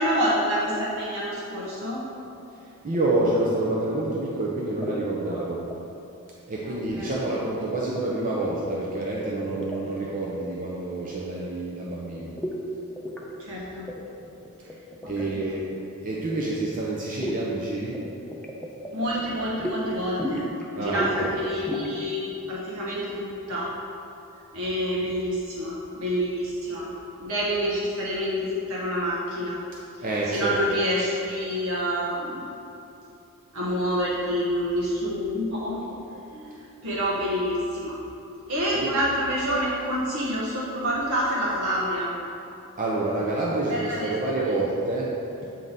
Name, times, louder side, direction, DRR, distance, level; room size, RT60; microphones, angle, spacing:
voice 1, 0.0-2.0 6.7-7.2 13.4-13.9 15.0-15.1 18.9-20.4 20.7-23.7 24.5-26.9 27.2-29.6 30.3-32.5 33.5-36.0 36.3-36.5 36.8-38.0 38.5-42.1 43.7-44.1 44.4-44.5, equal, 70° right, -7 dB, 1.1 m, -27 dB
voice 2, 2.6-5.7 6.5-12.4 15.1-15.7 16.0-18.0 20.8-21.4 30.0-30.6 38.7-38.9 42.8-45.4, right 2 dB, 35° right, -5 dB, 0.6 m, -28 dB
sound 1, 2.9-3.1 4.7-5.0 5.4-5.7 6.9-7.2 7.4-8.1 8.4-10.0 12.4-12.6 13.0-13.2 13.6-13.7 13.9-15.6 17.2-17.4 17.9-19.8 20.2-20.7 20.9-21.2 21.5-21.9, equal, 5° left, 0.5 m, -34 dB
7.4 x 3.8 x 4.0 m, 2.8 s
head